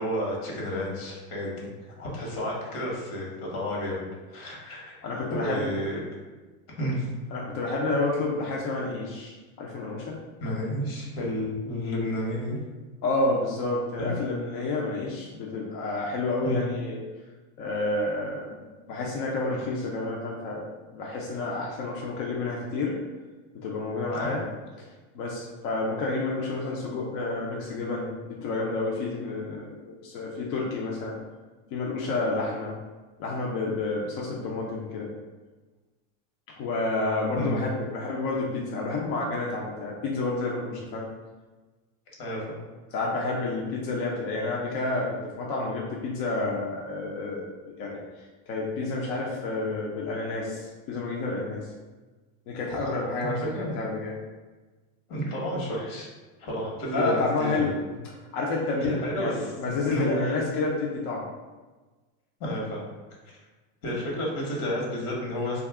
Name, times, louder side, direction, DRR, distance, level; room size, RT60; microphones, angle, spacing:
voice 1, 0.0-1.7 2.0-4.0 4.3-5.0 5.3-6.0 6.8-7.1 10.4-12.6 14.0-14.2 16.4-16.6 24.2-24.4 37.4-37.8 42.2-42.6 53.2-53.8 55.1-56.1 56.4-57.7 58.8-60.2 62.4-62.8 63.3-63.4 63.8-65.7, equal, 75° left, -2 dB, 1.2 m, -31 dB
voice 2, 5.0-5.7 7.3-10.2 13.0-17.0 17.6-20.6 20.9-23.0 23.5-24.4 24.8-24.9 25.1-31.2 31.7-32.7 33.2-35.1 36.6-41.1 42.9-47.5 47.8-51.7 52.5-54.2 56.9-57.7 58.0-61.2, left 3 dB, 50° left, -3 dB, 0.6 m, -30 dB
2.6 x 2.4 x 3.5 m, 1.3 s
supercardioid pair, 140°, 44 cm